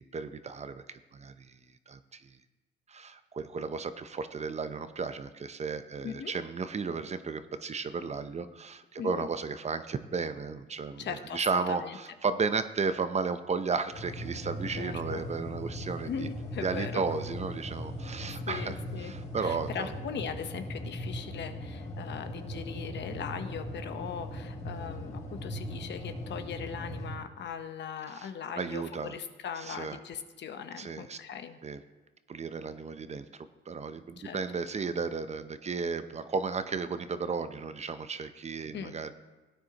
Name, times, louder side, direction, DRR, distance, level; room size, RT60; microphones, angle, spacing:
voice 1, 0.0-1.6 1.9-2.3 2.9-16.3 16.6-18.8 19.0-19.9 28.2-28.3 28.6-29.2 29.6-30.0 30.8-31.2 31.6-31.8 32.3-39.1, right 5 dB, 35° right, 11 dB, 0.6 m, -34 dB
voice 2, 9.0-9.3 11.0-12.0 14.8-15.2 16.1-17.0 18.3-19.1 19.4-31.6 34.2-34.4 38.7-38.9, left 7 dB, 65° left, 8 dB, 1.0 m, -39 dB
sound 1, 13.9-27.2, equal, 40° left, 4.2 m, -39 dB
17.0 x 9.3 x 2.9 m, 1.2 s
cardioid pair, 90°, 20 cm